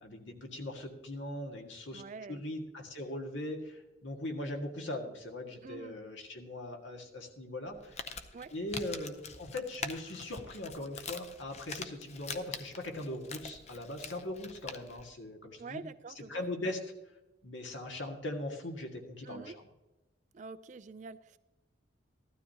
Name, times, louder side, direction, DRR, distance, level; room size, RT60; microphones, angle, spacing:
voice 1, 0.0-2.0 2.3-8.0 8.5-15.8 16.3-16.8 17.4-19.6, left 1 dB, 70° left, 2 dB, 1.8 m, -40 dB
voice 2, 1.9-2.4 5.6-6.0 8.3-8.5 15.6-16.7 19.2-19.6 20.3-21.4, right 4 dB, 40° right, 13 dB, 0.3 m, -46 dB
Crumpling crinkling, 7.7-15.1, left 5 dB, 35° left, 0.6 m, -44 dB
15.0 x 12.5 x 2.8 m, 1.0 s
head